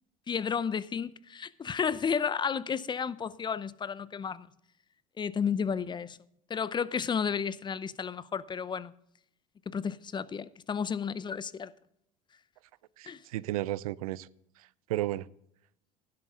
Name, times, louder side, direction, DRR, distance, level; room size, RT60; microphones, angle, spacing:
voice 1, 0.3-4.5 5.2-6.2 6.5-8.9 9.7-11.7 13.1-13.2, left 6 dB, 25° left, 0.6 m, -32 dB
voice 2, 13.0-14.3 14.6-15.3, right 15 dB, 85° right, 0.4 m, -34 dB
12.5 x 10.5 x 3.7 m
hypercardioid pair, 80°, 18 cm